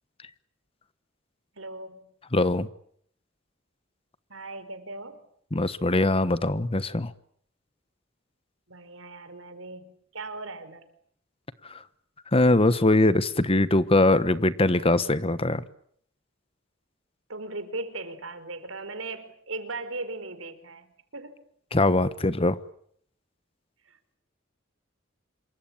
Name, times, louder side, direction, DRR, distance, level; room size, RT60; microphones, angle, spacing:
voice 1, 1.6-2.0 4.3-5.2 8.7-10.8 17.3-21.3 23.9-24.2, right 3 dB, 85° right, 10 dB, 4.5 m, -38 dB
voice 2, 2.3-2.7 5.5-7.1 11.7-11.8 12.3-15.6 21.7-22.6, left 2 dB, 30° left, 15 dB, 1.2 m, -22 dB
27.0 x 23.5 x 8.9 m, 0.65 s
head